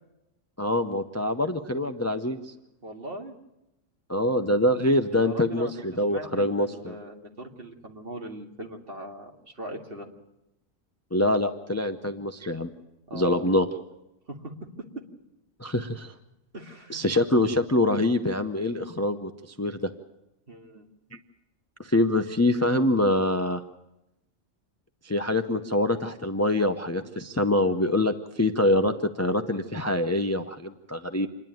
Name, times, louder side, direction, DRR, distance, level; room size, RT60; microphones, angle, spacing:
voice 1, 0.6-2.4 4.1-6.9 11.1-12.7 13.1-13.7 15.6-16.1 16.9-19.3 19.6-19.9 21.8-23.6 25.0-31.3, left 1 dB, 15° left, 7 dB, 0.7 m, -25 dB
voice 2, 2.8-3.3 5.1-5.7 6.1-10.1 13.1-13.6 14.4-14.5 16.5-17.0 20.5-20.8, right 1 dB, 50° right, 2 dB, 2.3 m, -40 dB
27.5 x 11.0 x 9.3 m, 0.89 s
omnidirectional pair, 1.3 m